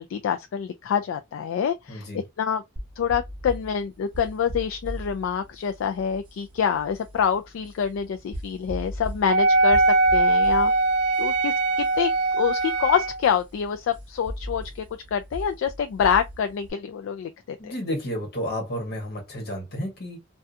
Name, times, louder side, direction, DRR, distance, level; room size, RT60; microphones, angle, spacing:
voice 1, 0.0-2.1 2.4-2.6 3.0-9.8 10.1-10.7 11.2-12.1 12.4-14.8 15.1-17.7, left 7 dB, 75° left, 0.3 m, -26 dB
voice 2, 1.9-2.2 17.6-20.2, equal, 55° left, 1.3 m, -31 dB
sound 1, 2.8-16.7, equal, 25° right, 0.9 m, -39 dB
Wind instrument woodwind instrument, 9.3-13.2, right 2 dB, 60° right, 0.3 m, -21 dB
2.4 x 2.2 x 2.5 m
head